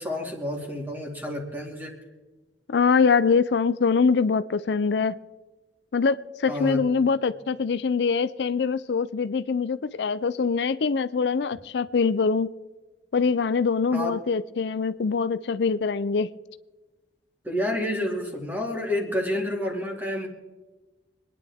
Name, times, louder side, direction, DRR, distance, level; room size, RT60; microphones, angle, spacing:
voice 1, 0.0-2.0 6.5-6.8 13.9-14.2 17.4-20.3, left 1 dB, 10° right, 2.3 m, -29 dB
voice 2, 2.7-5.2 5.9-12.5 13.1-16.3, left 5 dB, 70° left, 0.4 m, -23 dB
25.5 x 10.5 x 3.5 m
head